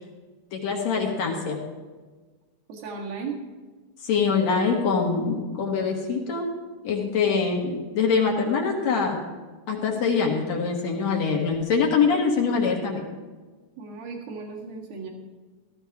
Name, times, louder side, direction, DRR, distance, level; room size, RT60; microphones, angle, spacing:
voice 1, 0.5-1.6 4.0-6.5 6.8-9.2 9.7-13.0, left 5 dB, 55° left, 0 dB, 2.4 m, -24 dB
voice 2, 2.7-3.4 13.8-15.1, right 5 dB, 75° right, -1 dB, 3.7 m, -35 dB
14.0 x 14.0 x 3.6 m, 1.4 s
omnidirectional pair, 4.2 m